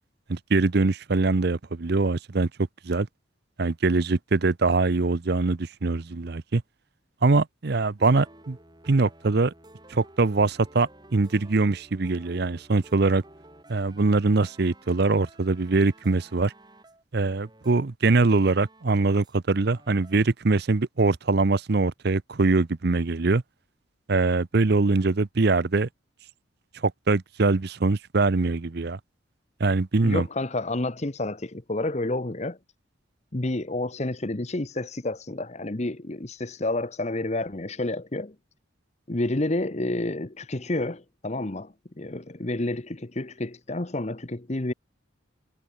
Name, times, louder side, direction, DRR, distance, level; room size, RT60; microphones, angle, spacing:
voice 1, 0.3-2.5 2.8-3.1 3.6-6.6 7.2-8.6 8.9-9.5 9.9-13.2 13.7-16.5 17.1-23.4 24.1-25.9 26.8-29.0 29.6-30.3, right 3 dB, 50° right, 0.7 m, -23 dB
sound 1, 8.0-19.4 19.6-20.2, right 1 dB, 20° right, 4.9 m, -53 dB
voice 2, 30.0-32.6 33.3-38.4 39.1-44.7, left 2 dB, 35° left, 1.0 m, -29 dB
head